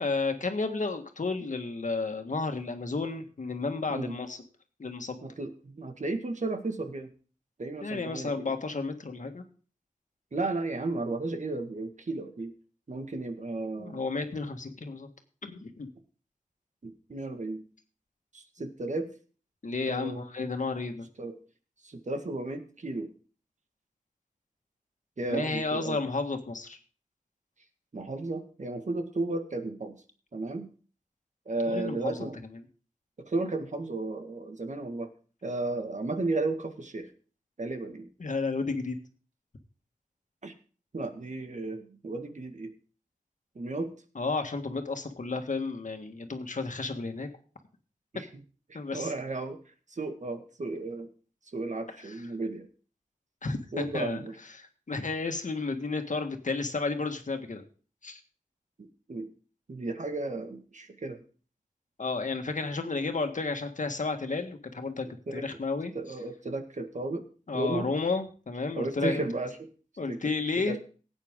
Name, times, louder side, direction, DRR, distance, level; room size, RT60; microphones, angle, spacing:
voice 1, 0.0-4.4 4.8-5.2 7.8-9.4 13.8-15.1 15.4-15.9 19.6-21.1 25.2-26.8 31.7-32.3 32.5-32.6 38.2-39.0 44.2-47.3 48.7-49.1 52.0-52.2 53.4-54.2 54.5-57.6 58.0-58.2 62.0-65.9 67.5-69.2 70.0-70.8, left 3 dB, 70° left, 5 dB, 1.7 m, -32 dB
voice 2, 5.2-7.1 7.6-8.5 10.3-12.5 12.9-14.0 16.8-17.6 18.3-19.1 19.9-20.2 21.2-21.4 21.8-23.1 25.2-26.0 27.9-30.0 30.3-30.7 31.5-32.4 33.2-35.1 35.4-37.1 37.6-38.1 40.4-40.5 40.9-42.7 43.6-43.9 48.1-48.3 48.7-49.6 49.9-51.1 51.5-52.7 53.7-54.3 59.1-59.3 59.7-61.2 65.3-65.5 65.9-67.3 67.5-67.9 68.8-69.7 70.1-70.2 70.7-70.8, right 2 dB, 60° right, 6 dB, 1.7 m, -34 dB
17.5 x 8.9 x 3.7 m, 0.40 s
wide cardioid pair, 85°, 14 cm